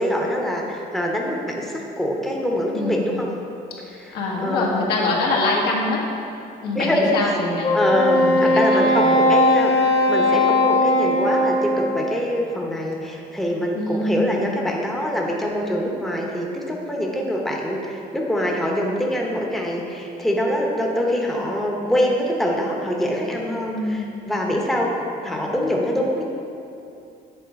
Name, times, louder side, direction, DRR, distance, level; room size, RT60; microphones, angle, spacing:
voice 1, 0.0-3.3 4.0-4.2 4.4-4.9 5.5-5.6 6.7-7.3 7.7-9.7 10.1-24.9 25.2-26.2, equal, ahead, -1 dB, 0.8 m, -24 dB
voice 2, 2.7-3.1 4.1-6.0 6.6-7.7 8.1-9.2 13.7-14.4 23.7-24.1, left 2 dB, 80° left, -3 dB, 1.3 m, -24 dB
Wind instrument woodwind instrument, 7.6-12.2, left 1 dB, 35° left, 1.0 m, -19 dB
7.8 x 3.7 x 5.2 m, 2.7 s
cardioid pair, 110°, 17 cm